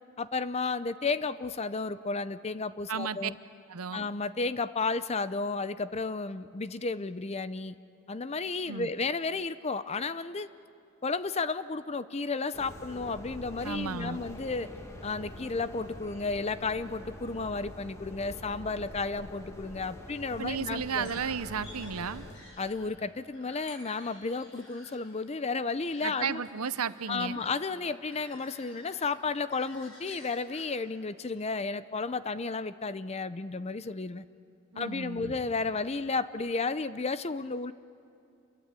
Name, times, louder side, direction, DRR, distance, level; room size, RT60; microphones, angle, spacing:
voice 1, 0.2-3.4 3.9-7.8 8.1-10.5 11.0-14.7 15.0-21.1 22.6-26.4 27.1-34.2 34.8-37.7, left 4 dB, 30° left, 14 dB, 0.6 m, -33 dB
voice 2, 2.9-3.3 3.7-4.1 8.7-8.9 13.6-14.2 20.4-22.2 26.0-27.4 34.7-35.3, right 6 dB, 90° right, 14 dB, 0.8 m, -34 dB
sound 1, 12.5-22.3, left 1 dB, 15° left, 2.0 m, -45 dB
sound 2, 20.6-31.4, left 1 dB, 60° left, 7.1 m, -53 dB
28.5 x 23.0 x 8.3 m, 2.7 s
head